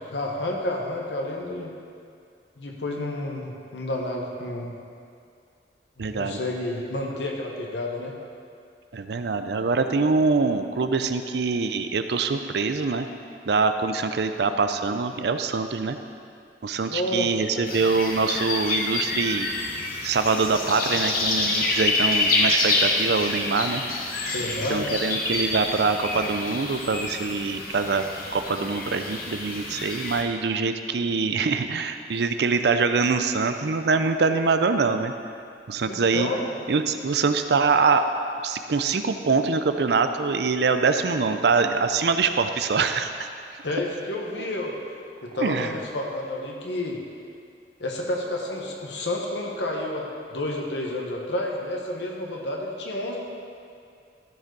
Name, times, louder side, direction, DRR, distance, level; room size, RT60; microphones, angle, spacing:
voice 1, 0.0-1.7 2.6-4.7 6.0-8.2 16.9-17.7 24.3-24.9 35.9-36.4 43.6-44.8 45.2-47.0 47.8-53.2, left 1 dB, 85° left, -1 dB, 1.3 m, -30 dB
voice 2, 6.0-6.4 8.9-13.1 13.5-16.0 16.6-19.5 20.0-23.8 24.7-28.1 28.3-35.1 35.7-36.3 36.7-38.0 38.4-43.3 44.4-44.5 45.3-45.7, right 4 dB, 65° right, 8 dB, 0.5 m, -24 dB
sound 1, 17.7-30.2, left 2 dB, 55° left, 1.1 m, -27 dB
13.5 x 5.3 x 4.0 m, 2.4 s
head